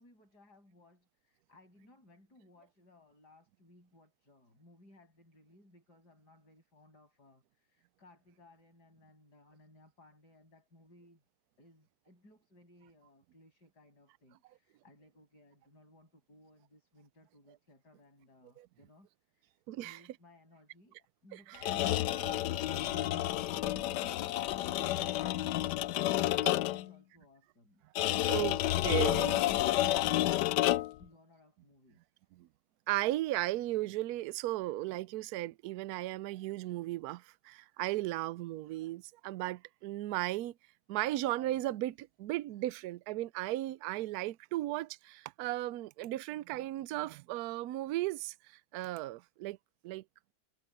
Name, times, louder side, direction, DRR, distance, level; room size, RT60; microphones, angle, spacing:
voice 1, 0.0-11.2 11.6-23.3 26.2-27.8 31.0-32.2, left 2 dB, 55° left, 8.4 m, -62 dB
voice 2, 19.7-20.0 21.3-21.7 22.1-24.1 26.4-26.5 28.1-28.6 28.8-29.4 32.3-32.5 32.9-40.5 40.9-49.6 49.8-50.0, right 16 dB, 80° right, 0.8 m, -36 dB
sound 1, 21.5-26.9 28.0-31.0, left 14 dB, 70° left, 1.1 m, -30 dB
omnidirectional pair, 2.2 m